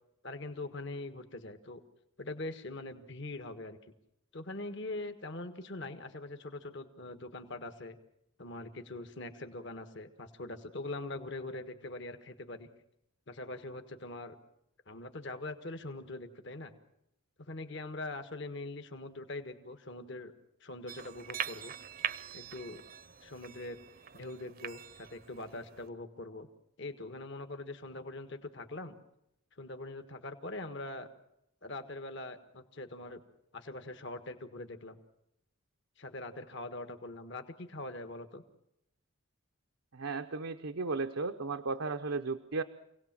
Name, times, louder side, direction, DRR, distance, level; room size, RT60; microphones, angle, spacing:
voice 1, 0.2-1.8 2.2-3.8 4.3-8.0 8.4-12.7 13.3-14.3 14.9-16.7 17.4-20.3 20.6-21.7 22.3-22.8 23.2-23.8 24.1-26.5 26.8-28.9 29.6-31.1 31.6-33.2 33.5-35.0 36.0-38.4, left 2 dB, 55° left, 8 dB, 1.6 m, -42 dB
sound 1, 20.9-25.9, right 9 dB, 45° right, 0.7 m, -42 dB
voice 2, 39.9-42.6, right 3 dB, 80° right, 5 dB, 0.9 m, -35 dB
27.0 x 18.0 x 7.5 m, 0.83 s
head